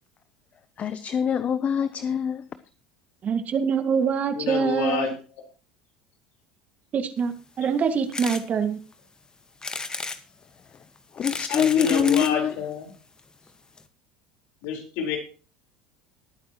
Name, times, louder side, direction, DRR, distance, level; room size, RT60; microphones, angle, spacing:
voice 1, 0.8-2.4 11.1-12.5, left 8 dB, 40° left, 0.7 m, -24 dB
voice 2, 3.2-5.1 6.9-8.8, right 6 dB, 40° right, 2.0 m, -25 dB
voice 3, 4.3-5.2 11.5-12.9 14.6-15.2, left 6 dB, 70° left, 4.4 m, -28 dB
sound 1, 8.1-8.4 8.9-9.0 9.6-10.2 11.0-12.4 13.2-13.3 13.5-13.6 13.8-13.9, left 4 dB, 20° left, 1.5 m, -33 dB
20.0 x 9.1 x 3.0 m
hypercardioid pair, 85°, 4 cm